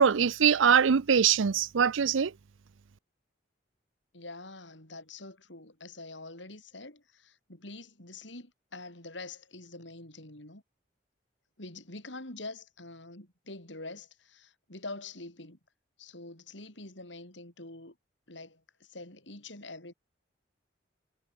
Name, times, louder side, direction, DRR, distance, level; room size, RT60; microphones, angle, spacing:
voice 1, 0.0-2.3, right 7 dB, 90° right, 0.6 m, -23 dB
voice 2, 4.1-10.6 11.6-15.6 16.0-18.0 18.3-19.9, left 2 dB, 75° left, 6.3 m, -45 dB
head